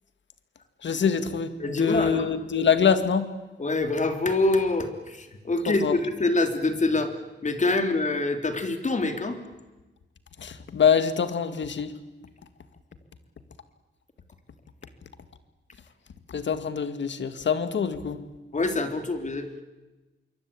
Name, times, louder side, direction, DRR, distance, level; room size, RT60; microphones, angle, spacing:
voice 1, 0.8-3.3 5.7-6.0 10.4-11.9 16.3-18.2, left 6 dB, 70° left, 11 dB, 2.1 m, -24 dB
voice 2, 1.6-2.3 3.6-7.1 7.4-9.4 18.5-19.5, left 2 dB, 40° left, 7 dB, 3.5 m, -25 dB
26.5 x 24.0 x 8.8 m, 1.1 s
cardioid pair, 95°, 20 cm